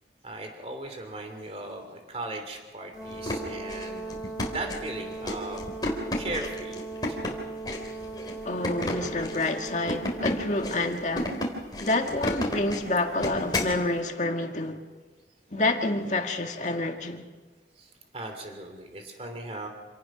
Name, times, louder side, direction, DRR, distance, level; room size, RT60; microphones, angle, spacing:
voice 1, 0.2-5.7 6.1-7.2 17.8-19.7, right 2 dB, 35° right, 3.0 m, -38 dB
Brass instrument, 2.9-10.9, right 3 dB, ahead, 3.2 m, -39 dB
sound 1, 3.0-13.8, left 1 dB, 25° left, 3.5 m, -32 dB
voice 2, 8.4-11.4 11.8-14.8 15.5-17.2, left 2 dB, 40° left, 1.9 m, -28 dB
27.5 x 18.5 x 6.1 m
head